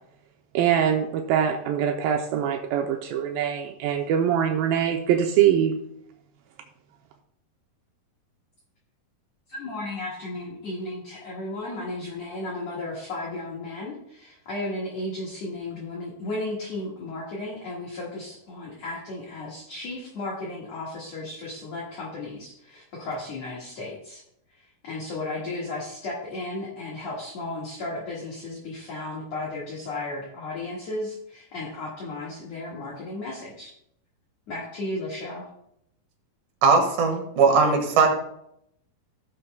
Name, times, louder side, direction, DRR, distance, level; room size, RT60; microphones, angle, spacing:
voice 1, 0.5-5.8, right 9 dB, 85° right, 3 dB, 2.4 m, -23 dB
voice 2, 9.5-24.2 24.8-33.7 34.5-35.5, left 2 dB, 50° left, -5 dB, 2.5 m, -34 dB
voice 3, 36.6-38.1, right 4 dB, 60° right, 3 dB, 2.8 m, -19 dB
16.5 x 7.0 x 2.2 m, 0.75 s
omnidirectional pair, 4.3 m